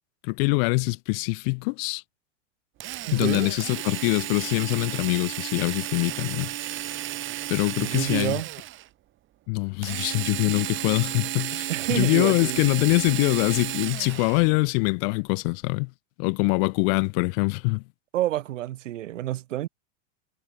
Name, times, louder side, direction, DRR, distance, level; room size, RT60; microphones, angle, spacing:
voice 1, 0.2-2.0 3.1-7.0 7.5-8.4 9.5-15.9 16.2-17.8, left 34 dB, 50° left, 1.5 m, -24 dB
Drill, 2.8-8.9 9.8-14.5, right 14 dB, 35° right, 3.3 m, -33 dB
voice 2, 3.1-3.5 7.8-8.5 11.7-12.7 18.1-19.7, right 14 dB, 80° right, 2.2 m, -28 dB
supercardioid pair, 140°, 37 cm